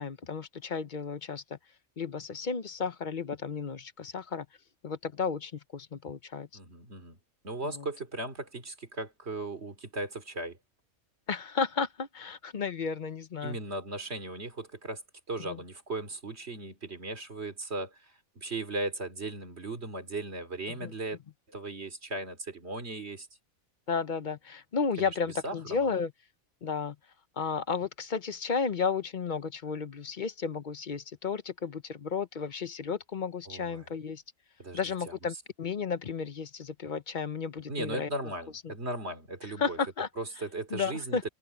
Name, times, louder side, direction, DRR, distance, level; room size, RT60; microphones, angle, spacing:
voice 1, 0.0-1.6 2.0-4.5 4.8-6.5 7.6-7.9 11.3-13.6 15.4-15.6 20.7-20.9 23.9-26.1 26.6-27.0 27.4-34.2 34.7-38.1 39.6-40.1 40.7-41.2, left 5 dB, 40° left, 0.8 m, -33 dB
voice 2, 6.5-7.2 7.4-10.6 13.4-15.0 15.3-21.2 21.5-23.3 25.0-25.1 25.4-25.9 33.5-33.9 34.6-34.8 35.1-35.2 37.7-39.8 40.2-41.3, right 2 dB, 50° right, 3.1 m, -37 dB
omnidirectional pair, 1.5 m